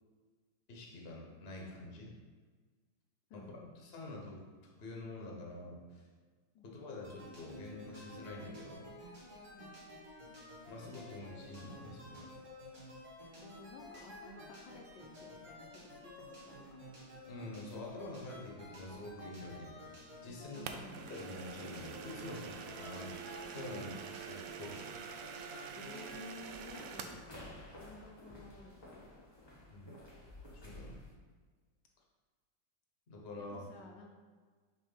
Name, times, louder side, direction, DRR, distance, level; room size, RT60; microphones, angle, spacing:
voice 1, 0.7-2.1 3.3-3.4 3.8-4.4 4.8-6.0 6.6-8.9 10.7-12.3 17.3-20.7 21.1-24.8 27.5-27.6 29.7-29.9 30.5-31.0 33.1-33.6, left 2 dB, 40° left, -1 dB, 1.1 m, -47 dB
voice 2, 3.3-3.8 6.5-6.7 9.5-9.8 13.3-16.8 20.5-21.0 25.7-29.2 33.4-34.1, left 3 dB, 75° left, 0 dB, 1.3 m, -54 dB
sound 1, 7.0-26.2, left 1 dB, 40° right, 2.3 m, -52 dB
sound 2, 20.7-27.3, right 7 dB, 80° right, 1.3 m, -46 dB
sound 3, 26.1-31.1, left 1 dB, 20° left, 0.9 m, -53 dB
6.3 x 3.1 x 5.4 m, 1.5 s
omnidirectional pair, 2.0 m